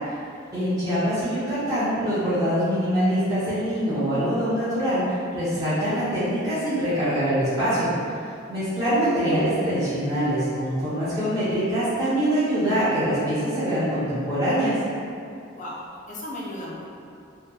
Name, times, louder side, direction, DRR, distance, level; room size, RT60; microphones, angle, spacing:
voice 1, 0.5-14.8, equal, 15° right, -14 dB, 0.5 m, -24 dB
voice 2, 15.5-16.9, left 1 dB, 40° left, -5 dB, 0.4 m, -35 dB
2.7 x 2.0 x 2.2 m, 2.4 s
head